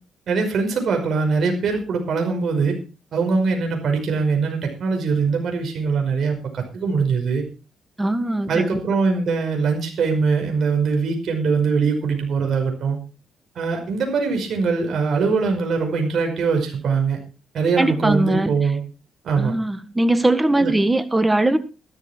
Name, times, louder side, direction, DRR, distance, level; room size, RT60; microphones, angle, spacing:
voice 1, 0.3-2.8 3.1-7.4 8.5-13.0 13.6-17.2 17.5-18.8 19.2-19.5 20.6-20.7, right 4 dB, 60° right, 5.3 m, -22 dB
voice 2, 8.0-8.8 17.8-18.5 19.4-21.6, right 1 dB, 15° right, 1.6 m, -20 dB
13.0 x 12.5 x 4.5 m
cardioid pair, 90°, 0 cm